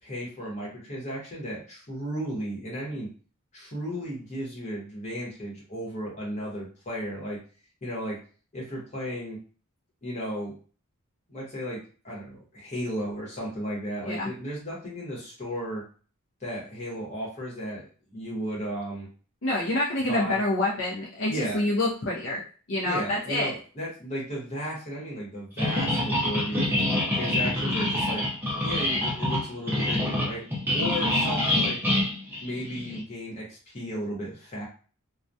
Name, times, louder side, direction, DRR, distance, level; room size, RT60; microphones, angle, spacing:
voice 1, 0.0-3.1 3.5-7.4 7.8-8.2 8.5-9.4 10.0-10.5 11.3-15.8 16.4-17.8 18.1-19.1 20.1-20.4 21.3-21.7 22.8-28.3 28.6-30.5 30.7-31.8 32.4-34.6, equal, 30° left, -3 dB, 0.9 m, -34 dB
voice 2, 19.4-22.4 22.7-23.5, left 1 dB, 60° left, -4 dB, 0.5 m, -27 dB
sound 1, 25.6-33.0, left 1 dB, 10° right, 0.5 m, -26 dB
2.2 x 2.2 x 2.6 m, 0.39 s
head